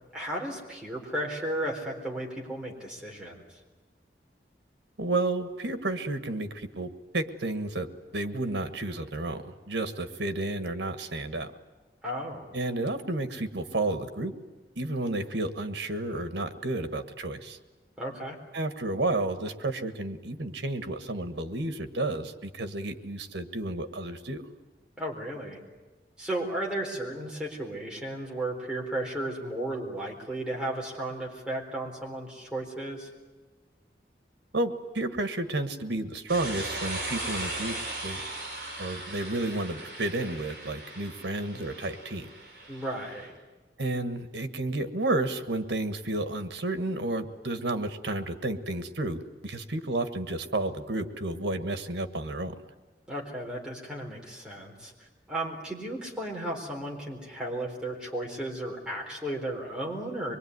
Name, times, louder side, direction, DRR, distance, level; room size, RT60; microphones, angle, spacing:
voice 1, 0.1-3.4 12.0-12.5 18.0-18.4 25.0-25.6 26.2-33.1 42.7-43.3 53.1-54.9 55.3-60.3, right 1 dB, 5° right, -2 dB, 4.1 m, -34 dB
voice 2, 5.0-6.9 7.1-11.5 12.5-14.3 14.8-17.6 18.5-24.4 34.5-37.8 38.0-38.2 38.8-42.3 43.8-52.5, right 2 dB, 90° right, 10 dB, 1.6 m, -31 dB
sound 1, 36.3-43.3, right 2 dB, 50° right, 7.5 m, -38 dB
25.0 x 22.0 x 9.6 m, 1.2 s
head